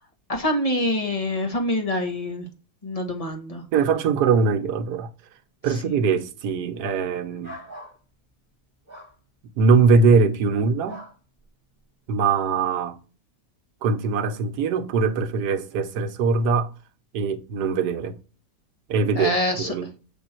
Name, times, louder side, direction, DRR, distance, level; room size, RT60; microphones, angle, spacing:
voice 1, 0.3-2.5 2.8-3.6 5.8-6.0 19.1-19.7, left 1 dB, 25° left, 1.4 m, -25 dB
voice 2, 3.7-5.1 5.6-7.5 9.6-11.0 12.1-13.0 13.8-16.7 17.1-18.1 18.9-19.3 19.6-19.9, right 5 dB, 80° right, 1.4 m, -21 dB
sound 1, 7.4-8.0 8.9-9.1 10.9-11.2, equal, 10° right, 1.9 m, -40 dB
7.8 x 3.5 x 4.4 m
omnidirectional pair, 1.7 m